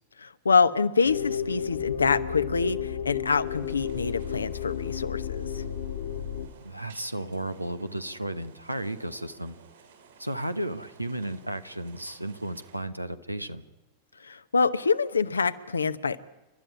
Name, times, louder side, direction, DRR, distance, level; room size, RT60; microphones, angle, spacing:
voice 1, 0.4-5.6 14.3-16.2, left 5 dB, 75° left, 12 dB, 0.9 m, -25 dB
sound 1, 1.0-6.5, left 8 dB, 60° left, 1.8 m, -32 dB
sound 2, 3.4-12.8, right 5 dB, 70° right, 6.9 m, -55 dB
voice 2, 6.6-9.6 10.2-13.6, right 1 dB, 85° right, 11 dB, 1.1 m, -34 dB
29.5 x 12.5 x 9.7 m, 1.1 s
figure-of-eight pair, 90°, 0 cm